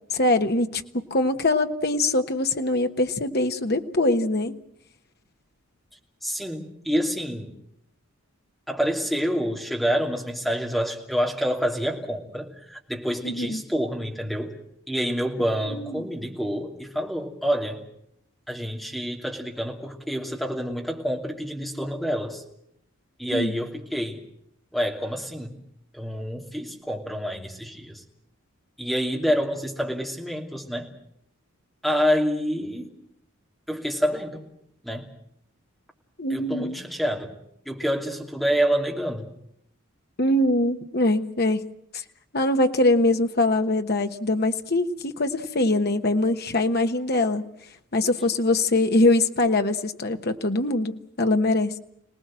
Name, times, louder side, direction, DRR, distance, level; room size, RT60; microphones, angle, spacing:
voice 1, 0.1-4.5 13.2-13.6 15.6-15.9 23.3-23.5 36.2-36.8 40.2-41.6 41.9-42.0 42.3-47.4 47.9-51.7, left 2 dB, 45° left, 6 dB, 1.3 m, -23 dB
voice 2, 6.2-7.5 8.7-14.6 14.9-17.8 18.5-22.4 23.2-24.2 24.7-25.6 25.9-28.0 28.8-30.9 31.8-32.9 33.7-34.5 34.8-35.1 36.3-37.3 37.6-39.3, equal, ahead, 0 dB, 2.8 m, -27 dB
27.0 x 19.0 x 7.6 m, 0.74 s
head